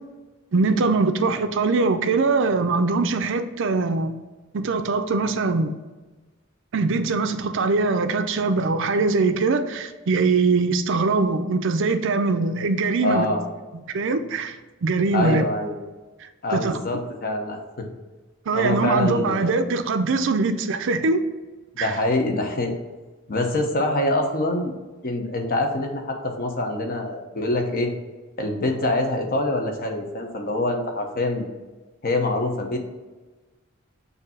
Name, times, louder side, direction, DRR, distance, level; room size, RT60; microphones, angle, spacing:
voice 1, 0.5-4.1 4.5-5.7 6.7-13.3 13.9-14.6 14.8-15.4 16.5-16.8 18.5-21.2 21.8-21.9, right 3 dB, 65° right, 9 dB, 0.5 m, -22 dB
voice 2, 13.0-13.4 15.1-15.8 16.4-17.9 18.5-19.5 21.7-22.7 23.3-24.7 25.0-27.9 28.4-31.5 32.0-32.8, left 2 dB, 45° left, 3 dB, 0.9 m, -25 dB
6.6 x 2.8 x 5.6 m, 1.3 s
head